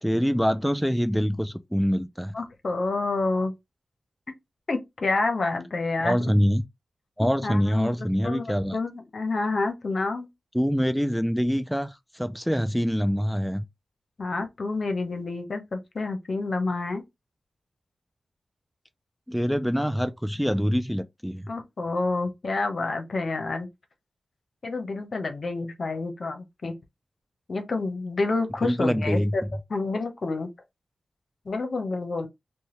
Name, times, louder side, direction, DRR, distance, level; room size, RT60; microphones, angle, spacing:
voice 1, 0.0-2.3 6.0-6.6 7.2-8.8 10.5-13.6 19.3-21.5 28.6-29.3, equal, ahead, 0.3 m, -25 dB
voice 2, 2.3-3.5 4.7-6.3 7.2-10.3 14.2-17.0 21.5-23.7 24.6-26.8 27.5-29.4 29.7-30.5 31.5-32.3, left 3 dB, 60° left, 0.7 m, -28 dB
2.6 x 2.2 x 3.0 m
cardioid pair, 50°, 0 cm